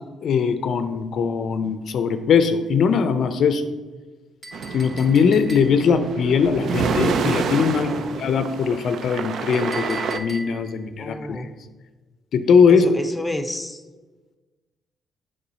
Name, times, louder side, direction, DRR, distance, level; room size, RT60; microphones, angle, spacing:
voice 1, 0.2-3.6 4.7-7.9 8.2-11.4 12.3-12.9, left 6 dB, 65° left, 10 dB, 0.4 m, -20 dB
Chink clink, 4.4-6.0 9.5-10.8, right 1 dB, 35° right, 1.5 m, -38 dB
Waves On Pebble Beach, 4.5-10.2, right 5 dB, 65° right, 0.4 m, -28 dB
voice 2, 11.0-11.5 12.7-13.8, left 1 dB, 5° left, 8 dB, 0.7 m, -30 dB
6.9 x 5.3 x 4.0 m, 1.3 s
cardioid pair, 75°, 0 cm